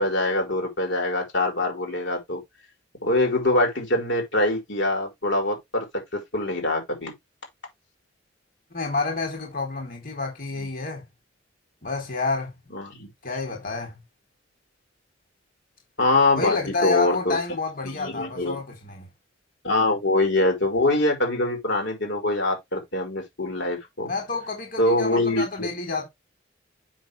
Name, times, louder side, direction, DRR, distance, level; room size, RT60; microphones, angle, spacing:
voice 1, 0.0-2.4 3.0-5.8 6.1-7.1 10.6-10.7 12.7-13.1 16.0-16.6 16.8-17.4 17.8-18.6 19.6-24.1 24.8-25.7, left 2 dB, 65° left, 4.5 m, -24 dB
voice 2, 8.7-11.0 11.8-12.5 13.2-14.0 16.4-19.1 24.1-26.1, left 3 dB, 45° left, 3.4 m, -29 dB
7.8 x 6.4 x 3.3 m
head